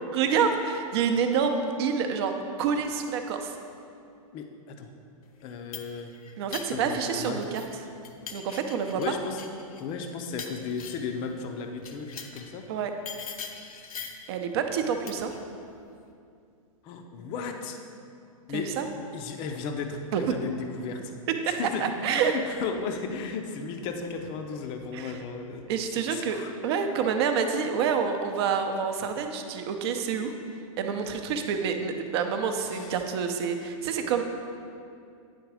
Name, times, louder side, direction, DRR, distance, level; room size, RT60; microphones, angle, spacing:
voice 1, 0.1-3.6 6.4-7.8 8.3-9.1 12.7-12.9 14.3-15.3 18.5-18.9 20.1-20.4 21.3-22.4 24.9-25.2 25.7-26.4 26.6-30.3 30.8-34.2, right 6 dB, 45° right, 6 dB, 0.7 m, -28 dB
voice 2, 4.3-4.9 5.4-6.1 6.6-7.4 9.0-9.4 9.8-12.7 16.8-17.8 18.5-18.7 19.1-21.1 21.5-25.6 26.1-26.5 32.7-33.0, left 5 dB, 30° left, 5 dB, 0.5 m, -35 dB
sound 1, 5.4-7.8 8.0-11.2 11.8-12.5 13.1-14.3 15.1-15.4, left 6 dB, 90° left, 0.7 m, -42 dB
9.4 x 3.9 x 4.8 m, 2.5 s
hypercardioid pair, 145°, 18 cm